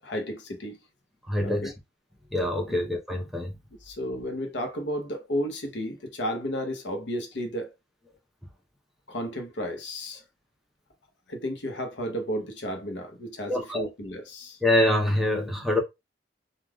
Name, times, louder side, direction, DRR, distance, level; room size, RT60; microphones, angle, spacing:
voice 1, 0.0-0.8 1.4-1.7 3.8-7.7 9.1-10.2 11.3-14.6, equal, 75° left, 0.8 m, -33 dB
voice 2, 1.3-1.7 2.3-3.6 13.5-13.8 14.6-15.8, left 1 dB, ahead, 0.6 m, -25 dB
3.3 x 2.3 x 2.2 m
head